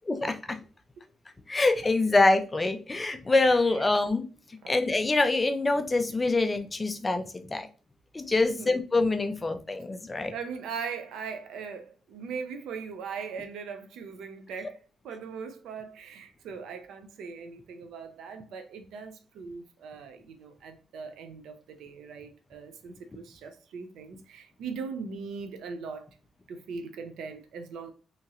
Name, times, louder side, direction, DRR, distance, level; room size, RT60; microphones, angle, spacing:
voice 1, 0.1-0.6 1.5-4.3 4.7-7.7 8.1-10.3, left 2 dB, 15° left, 0.3 m, -25 dB
voice 2, 10.3-14.8 15.0-26.1 26.5-27.9, right 5 dB, 90° right, 0.4 m, -40 dB
2.8 x 2.8 x 2.4 m
cardioid pair, 150°, 0 cm